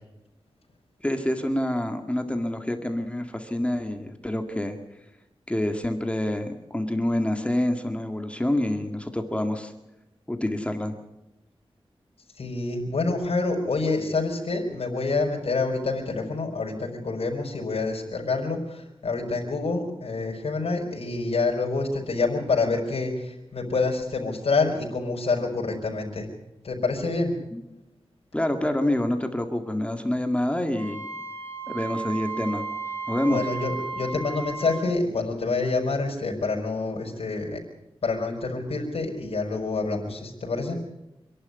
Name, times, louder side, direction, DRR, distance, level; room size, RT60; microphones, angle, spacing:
voice 1, 1.0-4.8 5.5-9.7 10.3-10.9 27.5-27.6 28.3-31.0 31.7-32.6 33.1-33.4, left 1 dB, 10° left, 6 dB, 1.9 m, -27 dB
voice 2, 12.4-26.3 26.6-27.3 33.3-37.6 38.0-40.8, left 3 dB, 80° left, 0 dB, 4.9 m, -27 dB
Wind instrument woodwind instrument, 30.7-34.8, right 4 dB, 70° right, 7.8 m, -34 dB
26.5 x 11.5 x 9.7 m, 0.94 s
wide cardioid pair, 110°, 10 cm